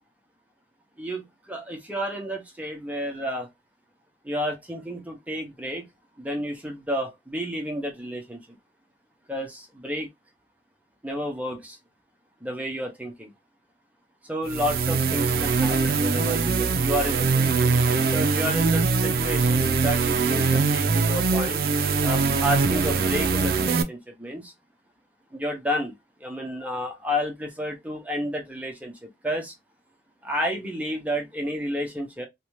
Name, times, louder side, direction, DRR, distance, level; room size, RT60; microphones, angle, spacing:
voice 1, 1.0-3.5 4.2-5.9 6.2-8.4 9.3-10.1 11.0-11.8 12.4-13.3 14.2-17.5 18.1-21.7 22.0-24.5 25.3-25.9 26.2-29.5 30.2-32.3, equal, 10° right, 0.6 m, -31 dB
sound 1, 14.5-23.8, right 4 dB, 55° right, 0.4 m, -22 dB
2.6 x 2.2 x 3.0 m
head